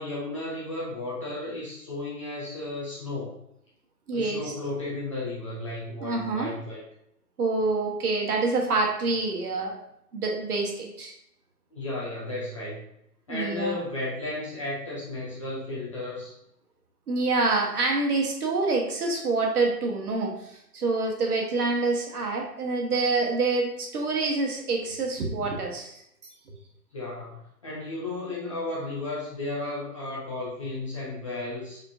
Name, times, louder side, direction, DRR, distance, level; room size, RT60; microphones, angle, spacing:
voice 1, 0.0-3.4 4.1-6.8 11.7-12.8 13.3-16.3 26.9-31.8, left 2 dB, 20° left, -6 dB, 0.5 m, -34 dB
voice 2, 4.1-4.5 6.0-6.5 7.4-9.8 10.1-11.1 13.3-13.8 17.1-26.0, right 3 dB, 65° right, 1 dB, 1.3 m, -26 dB
4.5 x 3.7 x 2.6 m, 0.76 s
figure-of-eight pair, 135°, 49 cm